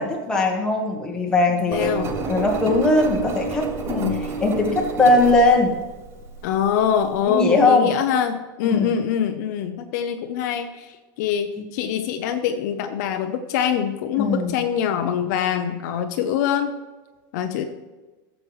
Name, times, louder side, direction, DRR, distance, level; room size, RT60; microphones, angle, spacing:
voice 1, 0.0-4.1 4.4-5.7 7.3-7.9 8.7-8.9 14.2-14.6, left 2 dB, 5° left, -1 dB, 1.4 m, -20 dB
voice 2, 1.7-2.1 3.9-4.3 6.4-16.7 17.3-17.6, left 8 dB, 55° left, 6 dB, 0.7 m, -24 dB
Engine, 1.7-7.2, right 4 dB, 20° right, 0.8 m, -30 dB
13.5 x 7.6 x 3.2 m, 1.2 s
supercardioid pair, 175°, 11 cm